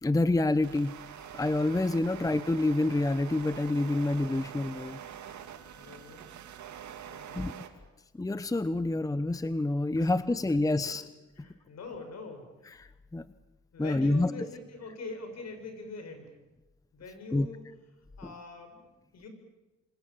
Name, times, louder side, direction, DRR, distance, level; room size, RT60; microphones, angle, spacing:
voice 1, 0.0-0.9 1.3-5.0 7.3-7.5 8.2-11.0 12.8-13.2 13.8-14.3 17.3-17.5, left 2 dB, 10° left, 14 dB, 0.9 m, -27 dB
sound 1, 0.6-7.7, right 9 dB, 70° right, 2.8 m, -45 dB
voice 2, 5.8-6.3 7.1-7.4 10.0-10.1 10.8-10.9 11.4-12.7 13.7-16.3 16.9-17.6 18.2-18.8 19.1-19.3, left 3 dB, 60° left, 6 dB, 7.2 m, -43 dB
28.0 x 25.5 x 7.4 m, 1.1 s
cardioid pair, 90°, 30 cm